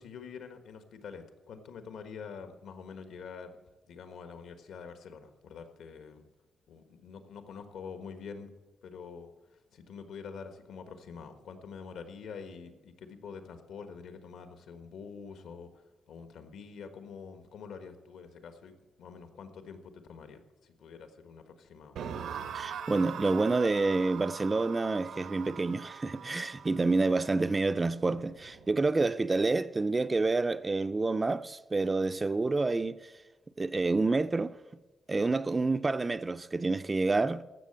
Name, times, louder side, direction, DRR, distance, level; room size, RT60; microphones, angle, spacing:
voice 1, 0.0-3.6 3.9-6.3 6.7-8.5 8.8-15.7 16.1-22.0, left 6 dB, 80° left, 1.3 m, -46 dB
sound 1, 22.0-29.1, right 7 dB, 85° right, 1.0 m, -43 dB
voice 2, 22.5-33.0 33.6-34.5 35.1-37.4, right 3 dB, 20° right, 0.3 m, -28 dB
14.5 x 6.6 x 8.6 m
wide cardioid pair, 155°, 0 cm